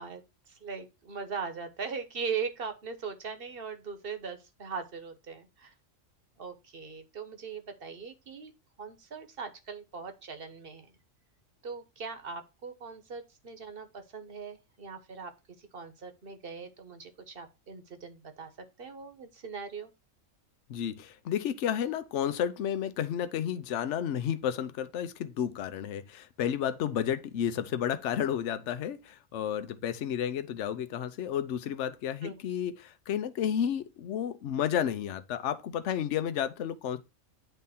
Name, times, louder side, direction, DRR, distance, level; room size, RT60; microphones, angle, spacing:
voice 1, 0.0-5.7 6.4-8.5 8.8-10.9 11.6-15.3 15.6-18.5 18.8-19.9 32.2-32.4, right 5 dB, 50° right, 1.2 m, -40 dB
voice 2, 20.7-37.0, left 9 dB, 65° left, 1.0 m, -32 dB
9.3 x 3.6 x 4.1 m
omnidirectional pair, 1.4 m